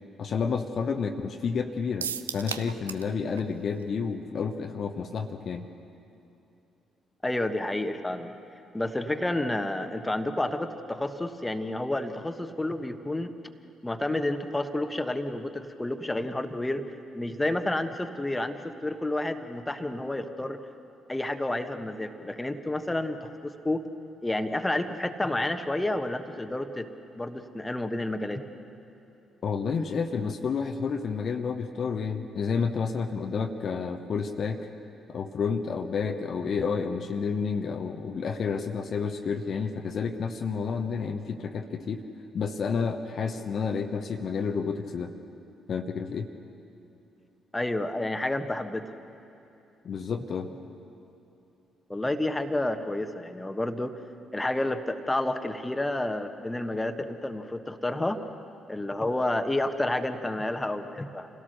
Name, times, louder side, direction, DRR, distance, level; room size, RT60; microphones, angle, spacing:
voice 1, 0.2-5.7 29.4-34.7 35.1-42.0 42.3-45.1 45.7-46.3 49.8-50.5, left 5 dB, 50° left, 5 dB, 1.0 m, -30 dB
sound 1, 2.0-3.1 3.4-3.5 3.8-3.9, right 8 dB, 80° right, 0.4 m, -34 dB
voice 2, 7.2-8.3 8.7-13.3 13.8-16.9 17.1-20.6 21.1-23.8 24.2-26.9 27.1-28.4 47.5-48.8 51.9-53.9 54.3-58.2 58.7-61.3, left 1 dB, 15° left, 7 dB, 1.4 m, -30 dB
27.0 x 17.0 x 6.7 m, 2.9 s
figure-of-eight pair, 40°, 0 cm